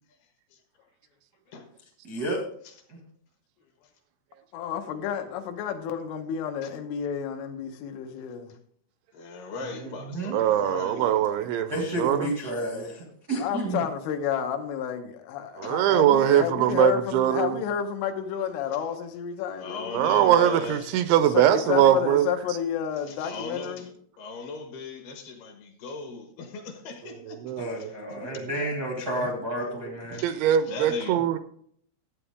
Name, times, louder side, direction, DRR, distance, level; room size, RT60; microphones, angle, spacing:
voice 1, 2.0-2.4 2.9-3.0 9.6-10.4 11.7-13.8 27.6-30.2, right 1 dB, 65° right, 0.9 m, -31 dB
voice 2, 4.5-8.6 13.4-20.0 21.1-23.9, left 9 dB, 85° left, 3.5 m, -30 dB
voice 3, 9.1-11.2 15.6-15.7 19.6-20.9 23.1-23.9 24.2-27.9 28.2-28.3 29.0-29.3 30.1-31.3, left 3 dB, 65° left, 2.9 m, -38 dB
voice 4, 10.3-11.7 12.0-12.3 15.6-17.6 19.9-22.3 27.4-27.8 30.2-31.4, right 11 dB, 85° right, 2.8 m, -21 dB
12.5 x 8.6 x 3.5 m
omnidirectional pair, 5.5 m